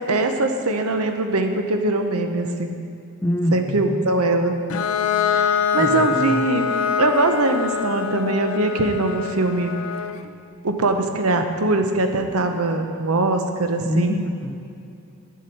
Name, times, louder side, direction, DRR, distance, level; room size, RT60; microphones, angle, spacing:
voice 1, 0.0-2.8 3.5-4.5 5.3-6.7 7.0-9.8 10.6-14.3, right 2 dB, 90° right, 6 dB, 0.8 m, -22 dB
voice 2, 3.2-4.1 5.8-6.4 13.9-14.6, equal, 10° left, 4 dB, 0.4 m, -25 dB
Bowed string instrument, 4.7-10.3, left 8 dB, 70° left, 0.4 m, -24 dB
10.0 x 7.3 x 4.5 m, 2.6 s
head